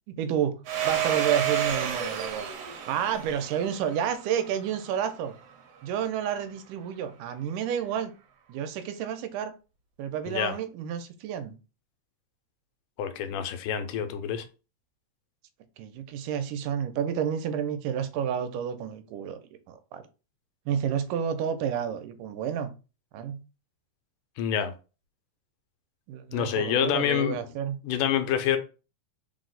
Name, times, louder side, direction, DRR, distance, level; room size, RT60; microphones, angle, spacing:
voice 1, 0.2-2.5 2.9-5.4 5.8-8.1 8.5-9.5 10.0-11.6 15.8-19.4 19.7-20.0 20.7-22.7 23.1-23.4 26.1-27.8, right 8 dB, 90° right, 2.1 m, -30 dB
Domestic sounds home sounds, 0.7-5.1, right 9 dB, 70° right, 1.4 m, -31 dB
voice 2, 13.0-14.5 24.4-24.7 26.3-27.4 27.8-28.6, left 9 dB, 90° left, 2.1 m, -27 dB
4.9 x 2.0 x 3.8 m
omnidirectional pair, 3.6 m